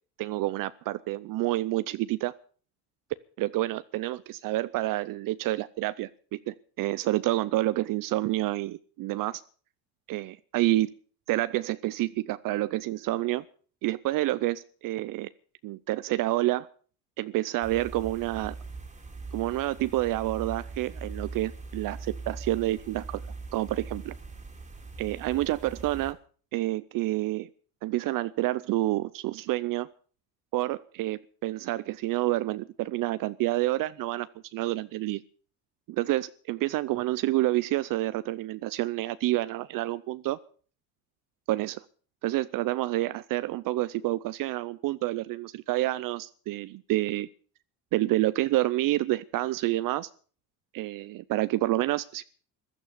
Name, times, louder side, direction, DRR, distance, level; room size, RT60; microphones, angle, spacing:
voice 1, 0.2-2.3 3.4-9.4 10.1-10.9 11.3-13.4 13.8-15.3 15.6-16.7 17.2-18.6 19.3-23.2 23.5-24.1 25.0-26.2 26.5-27.5 27.8-29.9 30.5-34.3 34.5-35.2 35.9-40.4 41.5-41.8 42.2-47.3 47.9-50.1 50.7-52.2, right 17 dB, 60° right, 15 dB, 0.7 m, -28 dB
sound 1, 17.6-26.1, right 4 dB, 20° right, 2.5 m, -41 dB
15.0 x 12.0 x 6.7 m, 0.43 s
cardioid pair, 135°, 37 cm